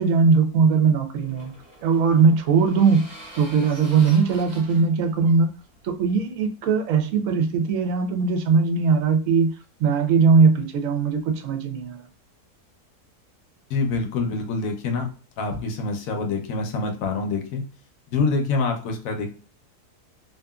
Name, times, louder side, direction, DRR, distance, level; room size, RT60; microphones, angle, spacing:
voice 1, 0.0-1.5 1.8-3.1 3.3-5.5 5.8-9.5 9.8-12.0, right 5 dB, 70° right, 6 dB, 0.8 m, -20 dB
sound 1, 0.7-6.2, equal, 25° right, 1.2 m, -46 dB
voice 2, 13.7-15.1 15.4-17.6 18.1-19.3, left 3 dB, 65° left, 4 dB, 0.9 m, -26 dB
2.8 x 2.5 x 2.2 m, 0.38 s
omnidirectional pair, 1.7 m